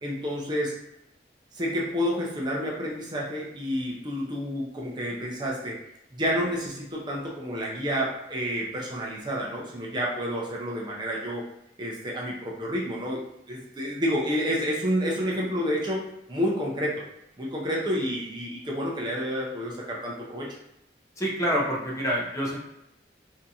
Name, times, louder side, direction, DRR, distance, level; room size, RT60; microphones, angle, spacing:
voice 1, 0.0-0.8 1.5-5.8 6.1-11.4 11.8-17.0 17.4-20.6, equal, 25° right, -3 dB, 0.5 m, -29 dB
voice 2, 21.2-22.6, equal, 15° left, -4 dB, 0.6 m, -27 dB
3.4 x 2.7 x 2.7 m, 0.83 s
head